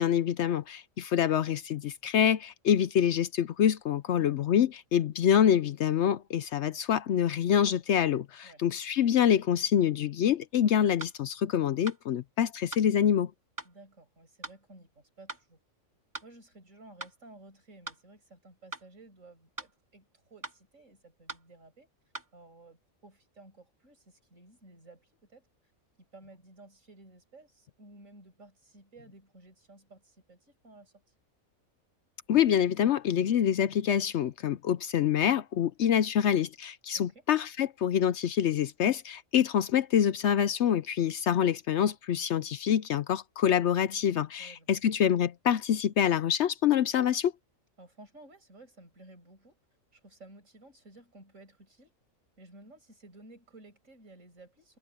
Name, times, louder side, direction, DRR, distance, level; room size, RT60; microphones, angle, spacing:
voice 1, 0.0-13.3 32.3-47.3, left 9 dB, 65° left, 0.8 m, -26 dB
sound 1, 11.0-11.2 11.9-12.0 12.7-12.9 13.6-13.7 14.4-14.6 15.3-15.5 16.1-16.3 17.0-17.2 17.9-18.0 18.7-18.9 19.6-19.7 20.4-20.6 21.3-21.5 22.1-22.3, right 2 dB, 15° right, 2.5 m, -41 dB
voice 2, 13.6-15.6 16.2-21.9 22.3-25.5 26.1-30.9 36.9-37.2 44.4-44.8 47.8-49.6 49.9-51.9 52.4-54.8, right 2 dB, 70° right, 6.4 m, -54 dB
omnidirectional pair, 1.4 m